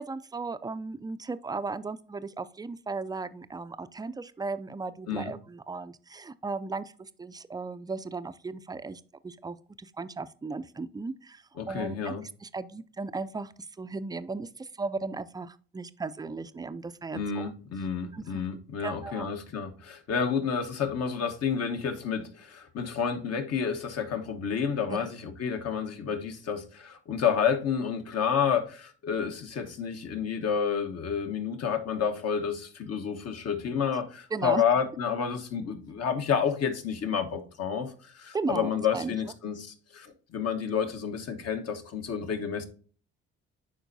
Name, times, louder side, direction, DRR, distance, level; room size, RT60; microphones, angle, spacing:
voice 1, 0.0-12.1 12.4-13.5 13.8-17.5 18.1-18.5 18.8-19.3 24.9-25.1 34.3-34.6 38.3-39.2, right 3 dB, 15° right, 0.4 m, -36 dB
voice 2, 11.6-12.2 17.1-42.7, left 7 dB, 50° left, 1.2 m, -30 dB
10.0 x 4.4 x 2.6 m
hypercardioid pair, 50°, 31 cm